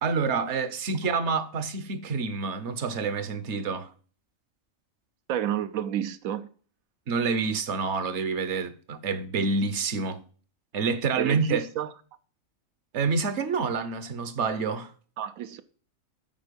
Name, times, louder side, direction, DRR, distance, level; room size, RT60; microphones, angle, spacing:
voice 1, 0.0-3.9 7.1-10.2 10.7-11.6 12.9-14.9, right 4 dB, 60° right, 1.1 m, -28 dB
voice 2, 5.3-6.5 11.2-11.9 15.2-15.6, right 10 dB, 80° right, 1.0 m, -30 dB
9.0 x 4.4 x 5.1 m
omnidirectional pair, 1.4 m